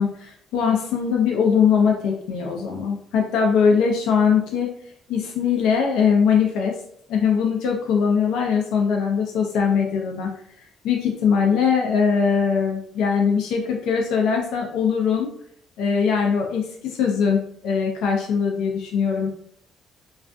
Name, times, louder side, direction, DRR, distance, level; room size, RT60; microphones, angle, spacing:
voice 1, 0.0-4.8 5.1-6.8 7.1-10.3 10.8-15.3 15.8-19.3, left 6 dB, 90° left, 0 dB, 0.4 m, -21 dB
2.5 x 2.3 x 2.2 m, 0.64 s
cardioid pair, 175°, 0 cm